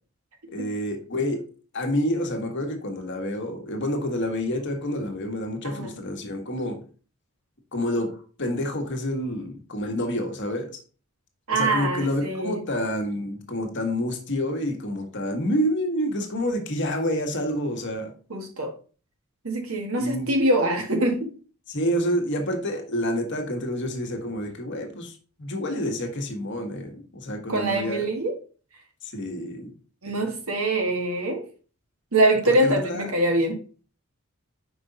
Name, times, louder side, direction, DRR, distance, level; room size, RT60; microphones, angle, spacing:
voice 1, 0.5-1.4 1.7-6.8 7.7-10.8 11.5-18.1 20.0-20.3 21.7-28.1 29.0-29.7 32.5-33.1, equal, 55° left, 1.3 m, -28 dB
voice 2, 11.5-12.6 18.3-18.7 19.4-21.3 27.5-28.3 30.0-31.4 32.1-33.6, right 1 dB, 75° right, 1.5 m, -24 dB
5.3 x 5.0 x 3.9 m
head